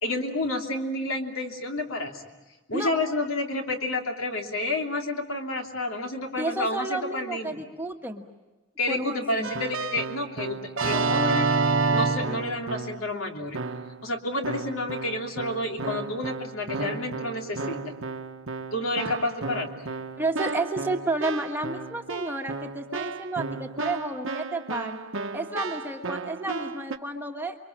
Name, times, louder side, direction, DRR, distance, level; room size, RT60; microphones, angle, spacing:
voice 1, 0.0-2.2 2.7-7.6 8.8-11.5 11.9-13.6 14.0-17.9 18.7-19.7, left 2 dB, 70° left, 2 dB, 3.2 m, -30 dB
voice 2, 6.4-8.2 8.9-9.6 20.2-25.0 25.3-27.5, right 2 dB, 10° right, 2 dB, 1.4 m, -31 dB
Keyboard (musical), 9.4-13.1 13.5-14.0 14.4-27.0, right 4 dB, 65° right, 1.1 m, -31 dB
30.0 x 24.0 x 7.4 m, 1.2 s
head